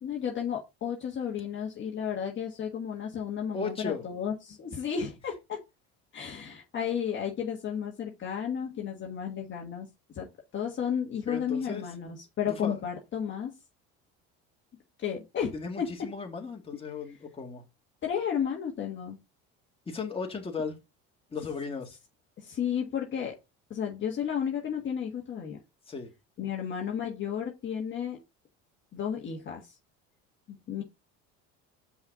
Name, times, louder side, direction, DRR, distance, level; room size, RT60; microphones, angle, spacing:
voice 1, 0.0-5.6 6.1-9.9 10.1-13.5 15.0-16.1 18.0-19.2 22.4-23.3 23.7-25.6 26.4-28.2 28.9-29.7 30.5-30.8, left 8 dB, 35° left, 1.5 m, -33 dB
voice 2, 3.5-4.1 11.3-11.8 12.5-12.8 15.5-17.6 19.9-20.8 21.3-22.0 25.9-26.1, left 5 dB, 20° left, 2.0 m, -36 dB
5.7 x 4.3 x 5.3 m
cardioid pair, 125°, 31 cm